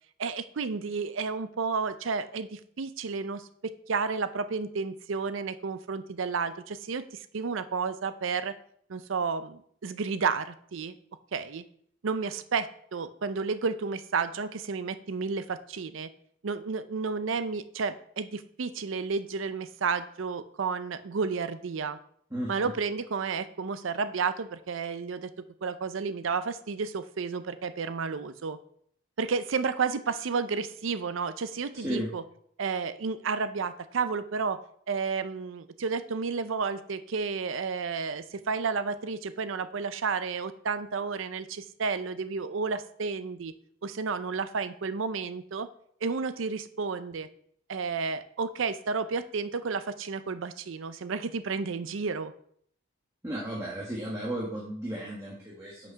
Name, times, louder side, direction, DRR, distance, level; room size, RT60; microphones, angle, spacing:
voice 1, 0.2-8.6 8.9-10.9 11.3-11.6 12.0-16.1 16.4-22.0 22.5-25.3 25.6-28.6 29.2-32.2 32.6-34.6 34.9-43.5 43.8-45.7 46.0-47.3 47.7-52.3, right 5 dB, 70° right, 12 dB, 0.5 m, -31 dB
voice 2, 31.7-32.1 53.2-55.9, right 1 dB, 15° right, -4 dB, 1.4 m, -34 dB
6.0 x 5.3 x 5.6 m, 0.65 s
head